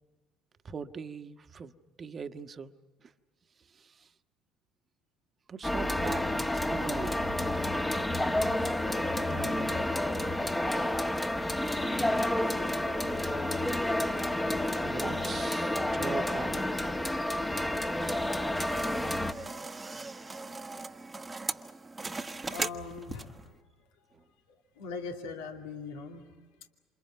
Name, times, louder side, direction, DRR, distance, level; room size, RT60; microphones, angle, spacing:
voice 1, 0.6-2.7 3.0-3.1 3.7-4.1 5.5-7.5 9.3-10.0 10.7-11.0 14.8-16.6 24.1-24.3, right 5 dB, 35° right, 9 dB, 1.3 m, -41 dB
sound 1, 5.6-19.3, left 1 dB, 10° left, 1.6 m, -30 dB
sound 2, 18.0-23.5, right 3 dB, 20° right, 1.3 m, -39 dB
voice 2, 22.4-23.9 24.5-26.7, left 4 dB, 75° left, 3 dB, 2.6 m, -42 dB
28.5 x 28.0 x 5.9 m, 1.3 s
hypercardioid pair, 65°, 0 cm